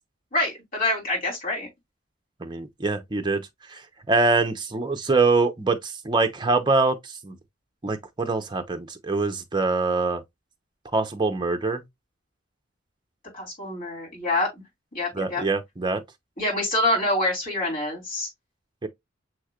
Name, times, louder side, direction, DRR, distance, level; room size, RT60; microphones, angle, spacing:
voice 1, 0.3-1.7 13.3-14.5 14.9-15.4 16.4-18.3, left 2 dB, 45° left, 3.2 m, -26 dB
voice 2, 2.4-3.8 4.1-7.4 7.8-10.2 10.9-11.8 15.1-16.0 18.8-18.9, right 3 dB, 25° right, 0.6 m, -24 dB
6.3 x 3.1 x 2.3 m
head